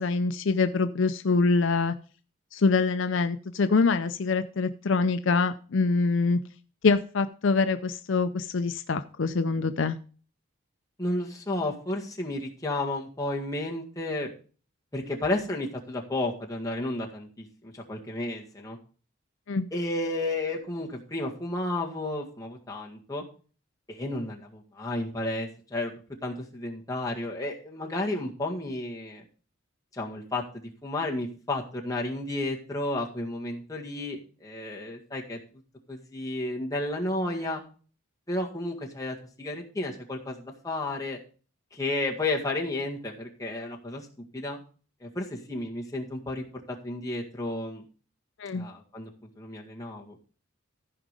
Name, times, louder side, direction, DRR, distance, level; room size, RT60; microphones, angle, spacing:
voice 1, 0.0-1.9 2.5-6.4 6.8-10.0 19.5-19.7 48.4-48.7, left 4 dB, 65° left, 9 dB, 0.5 m, -25 dB
voice 2, 11.0-14.3 14.9-18.8 19.7-23.2 23.9-25.9 26.2-29.2 29.9-35.4 35.9-37.6 38.3-41.2 41.7-44.1 44.3-44.6 45.0-47.8 48.5-49.1 49.4-50.2, left 2 dB, 15° left, -1 dB, 1.8 m, -32 dB
14.5 x 5.0 x 5.2 m, 0.39 s
head